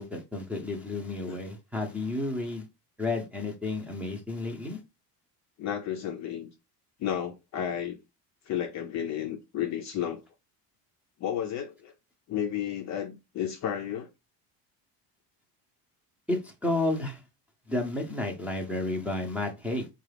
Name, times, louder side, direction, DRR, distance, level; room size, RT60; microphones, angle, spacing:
voice 1, 0.0-2.7 3.0-4.8 16.3-17.2 17.7-19.9, left 2 dB, 5° right, 0.7 m, -31 dB
voice 2, 5.6-6.5 7.0-8.0 8.5-10.2 11.2-11.9 12.3-14.1, left 9 dB, 40° left, 0.5 m, -32 dB
4.7 x 2.4 x 3.3 m
cardioid pair, 150°, 44 cm